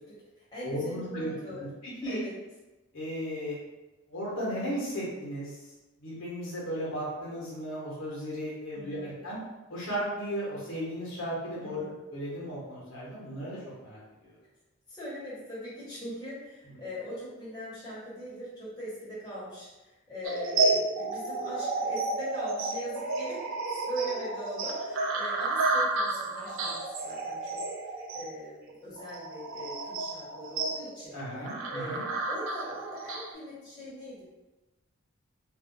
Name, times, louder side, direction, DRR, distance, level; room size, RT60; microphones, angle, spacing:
voice 1, 0.0-1.7 2.0-2.3 8.7-9.1 11.6-11.9 14.9-23.5 23.7-31.2 31.7-34.3, right 1 dB, 20° left, -11 dB, 1.2 m, -41 dB
voice 2, 0.6-1.3 1.6-2.2 2.9-3.6 4.1-5.6 6.0-9.4 9.7-11.8 12.1-14.3 16.6-16.7 31.1-32.0, equal, 70° left, -6 dB, 1.0 m, -35 dB
sound 1, 20.2-33.3, right 3 dB, 70° right, 0.4 m, -31 dB
2.5 x 2.1 x 3.9 m, 1.1 s
head